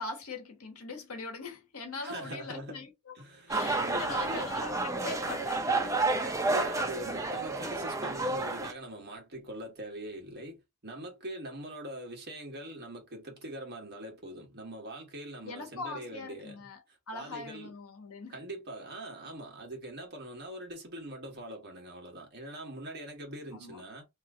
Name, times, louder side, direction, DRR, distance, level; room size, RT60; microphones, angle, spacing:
voice 1, 0.0-3.1 3.5-6.1 15.4-16.8 17.1-18.4 23.5-23.8, left 3 dB, 70° left, 1.1 m, -42 dB
voice 2, 2.0-2.8 3.1-4.5 6.5-17.7 18.3-24.0, right 1 dB, 50° right, 1.3 m, -43 dB
sound 1, 3.5-8.7, right 2 dB, 15° right, 0.5 m, -30 dB
3.0 x 2.4 x 3.6 m
head